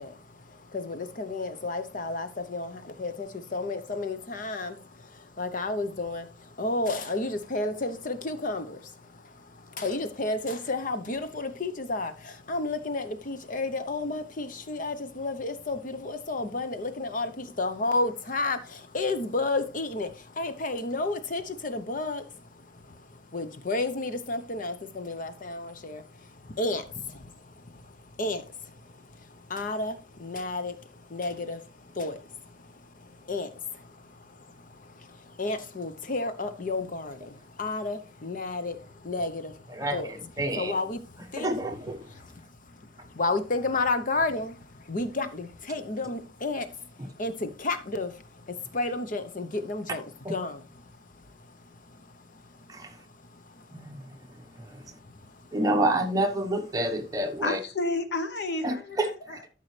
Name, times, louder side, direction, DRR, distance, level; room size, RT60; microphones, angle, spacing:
voice 1, 0.0-40.1 40.6-41.5 42.0-50.7 51.0-52.9 53.3-53.9 54.8-55.5, left 2 dB, 50° left, 0.8 m, -33 dB
voice 2, 39.7-40.7 41.4-42.0 50.2-50.4 52.7-52.9 53.7-54.0 55.5-57.6 58.6-59.4, right 1 dB, 20° right, 1.1 m, -28 dB
voice 3, 57.4-59.5, left 2 dB, 70° left, 1.1 m, -31 dB
13.0 x 5.6 x 3.2 m
head